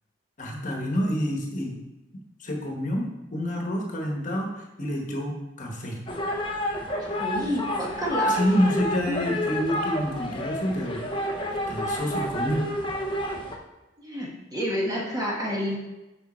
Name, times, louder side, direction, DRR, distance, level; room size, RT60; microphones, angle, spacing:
voice 1, 0.4-1.8 2.4-6.0 8.3-11.3 11.7-12.7, equal, 45° left, 1 dB, 1.2 m, -28 dB
sound 1, 6.1-13.6, equal, 25° left, 0.7 m, -29 dB
voice 2, 7.0-8.4 14.0-15.8, equal, 20° right, -3 dB, 1.4 m, -29 dB
6.6 x 5.3 x 4.3 m, 1.0 s
head